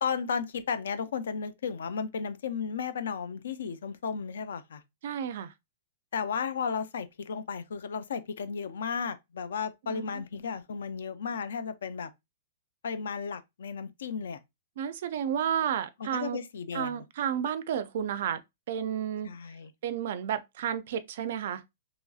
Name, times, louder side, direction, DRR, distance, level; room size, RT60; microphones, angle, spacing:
voice 1, 0.0-4.8 6.1-12.1 12.8-14.4 16.0-17.0 19.2-19.7, left 6 dB, 75° left, 0.5 m, -34 dB
voice 2, 5.0-5.5 9.9-10.2 14.8-16.4 16.7-18.4 18.7-19.3 19.8-21.6, right 9 dB, 45° right, 0.3 m, -31 dB
2.9 x 2.6 x 2.3 m
hypercardioid pair, 175°, 0 cm